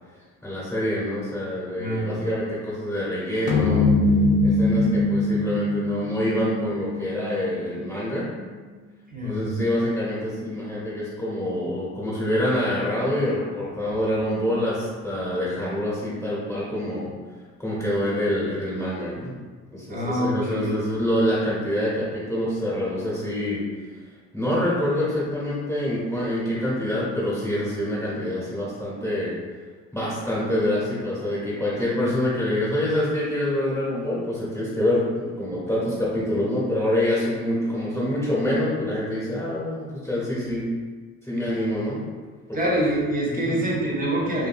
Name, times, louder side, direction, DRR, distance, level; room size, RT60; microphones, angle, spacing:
voice 1, 0.4-3.9 4.4-8.3 9.2-17.1 17.6-19.3 19.7-23.6 24.3-29.3 29.9-40.6 41.2-42.0 42.5-42.6 43.3-43.6, left 1 dB, 10° left, -9 dB, 1.1 m, -26 dB
voice 2, 1.8-2.2 4.6-4.7 9.1-9.7 19.9-20.7 42.5-44.5, right 1 dB, 30° right, -4 dB, 0.8 m, -25 dB
sound 1, 3.5-8.1, left 2 dB, 80° left, 0.5 m, -22 dB
2.6 x 2.6 x 2.6 m, 1.4 s
cardioid pair, 90°, 30 cm